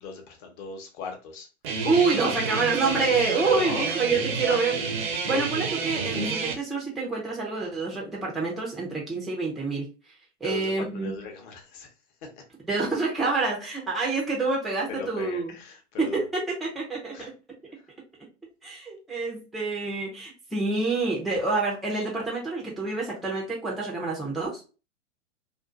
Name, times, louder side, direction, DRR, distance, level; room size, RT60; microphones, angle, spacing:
voice 1, 0.0-1.5 3.5-3.9 4.4-4.6 10.4-11.9 12.2-12.4 14.9-16.2 17.1-17.3, left 5 dB, 40° left, 3 dB, 0.8 m, -38 dB
Guitar, 1.6-6.6, right 5 dB, 55° right, 0.6 m, -29 dB
voice 2, 1.8-4.7 5.2-9.9 10.4-11.1 12.7-15.5 16.0-17.1 18.6-24.6, right 3 dB, ahead, -3 dB, 0.4 m, -27 dB
2.5 x 2.4 x 2.3 m, 0.32 s
hypercardioid pair, 120°, 36 cm